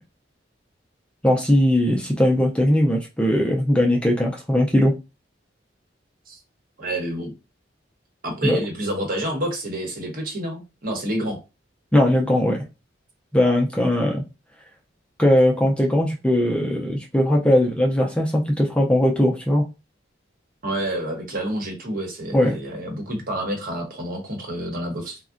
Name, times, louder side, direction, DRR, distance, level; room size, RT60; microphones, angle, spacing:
voice 1, 1.2-4.9 8.4-8.6 11.9-12.6 13.3-14.2 15.2-19.7 22.3-22.5, left 1 dB, 5° left, 0 dB, 0.4 m, -19 dB
voice 2, 6.8-7.3 8.2-11.4 20.6-25.2, right 1 dB, 50° right, 2 dB, 0.9 m, -28 dB
3.5 x 2.1 x 2.5 m, 0.27 s
head